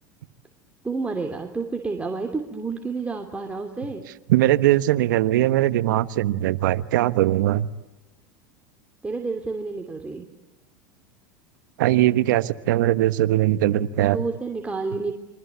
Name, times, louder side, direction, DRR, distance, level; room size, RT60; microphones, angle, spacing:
voice 1, 0.8-4.0 9.0-10.2 14.1-15.1, right 4 dB, 15° right, 3 dB, 2.9 m, -29 dB
voice 2, 4.3-7.7 11.8-14.2, right 14 dB, 75° right, 13 dB, 1.3 m, -20 dB
28.5 x 24.0 x 8.2 m, 1.1 s
hypercardioid pair, 100°, 10 cm